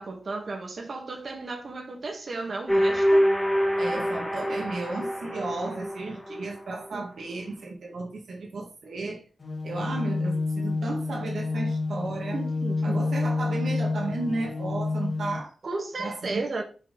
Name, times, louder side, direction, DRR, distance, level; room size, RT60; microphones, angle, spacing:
voice 1, 0.0-3.3 6.9-7.0 12.3-13.0 15.6-16.6, right 3 dB, 50° right, 1.8 m, -34 dB
sound 1, 2.7-6.6, equal, 5° left, 1.6 m, -25 dB
voice 2, 3.8-9.2 9.6-12.4 12.8-15.5 16.0-16.4, right 3 dB, 80° right, 1.9 m, -34 dB
sound 2, 9.4-15.4, left 3 dB, 40° left, 2.2 m, -29 dB
5.9 x 4.7 x 5.4 m
wide cardioid pair, 95°, 0 cm